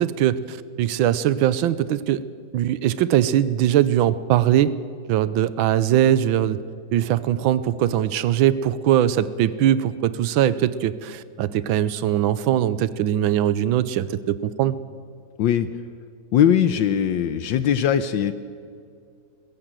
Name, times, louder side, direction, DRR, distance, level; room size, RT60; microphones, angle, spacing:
voice 1, 0.0-2.2 2.5-4.7 5.1-6.6 6.9-14.8, right 11 dB, 85° right, 16 dB, 1.5 m, -21 dB
voice 2, 15.4-15.7 16.3-18.3, left 9 dB, 75° left, 12 dB, 1.4 m, -20 dB
21.0 x 16.5 x 7.6 m, 2.3 s
omnidirectional pair, 2.1 m